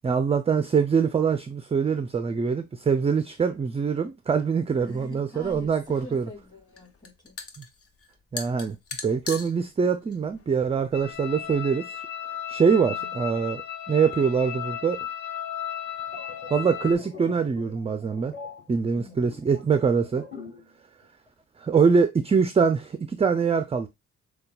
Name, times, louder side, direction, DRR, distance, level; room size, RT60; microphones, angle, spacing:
voice 1, 0.0-6.3 8.3-8.8 9.0-12.0 12.5-13.6 13.9-15.0 16.5-18.3 18.7-20.2 21.6-23.9, right 6 dB, 20° right, 0.4 m, -24 dB
voice 2, 4.8-7.3 12.8-13.1 19.0-19.5, left 2 dB, 15° left, 2.3 m, -45 dB
sound 1, 5.4-11.6, left 4 dB, 50° left, 1.0 m, -41 dB
sound 2, 10.9-16.9, left 10 dB, 70° left, 0.6 m, -35 dB
sound 3, 15.9-20.8 21.0-21.3, left 4 dB, 30° left, 2.8 m, -44 dB
6.7 x 2.3 x 2.3 m
cardioid pair, 90°, 30 cm